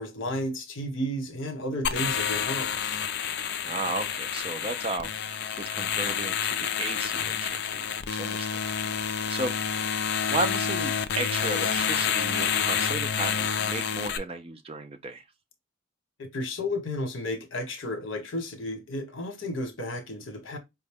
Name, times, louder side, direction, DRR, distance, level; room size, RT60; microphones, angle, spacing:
voice 1, 0.0-3.0 16.2-20.6, left 1 dB, 75° left, 1.0 m, -33 dB
sound 1, 1.8-14.2, left 7 dB, 55° left, 0.4 m, -29 dB
voice 2, 3.6-8.5 9.3-9.5 10.3-15.2, right 3 dB, 30° right, 0.4 m, -34 dB
4.8 x 2.1 x 3.4 m
head